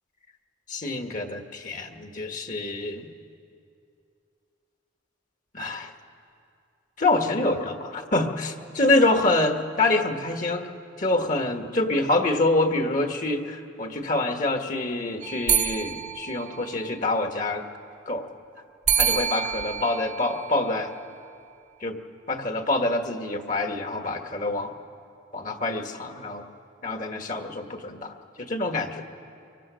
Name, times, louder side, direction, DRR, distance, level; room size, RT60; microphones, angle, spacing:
voice 1, 0.7-3.1 5.5-5.9 7.0-10.7 11.0-17.6 18.1-18.3 19.0-20.9 21.8-22.0 22.3-24.7 25.3-26.4 26.8-29.0, left 2 dB, 40° left, 4 dB, 1.5 m, -26 dB
sound 1, 15.2-17.2 18.9-21.2, right 9 dB, 35° right, 1.1 m, -28 dB
24.5 x 24.5 x 6.3 m, 2.5 s
head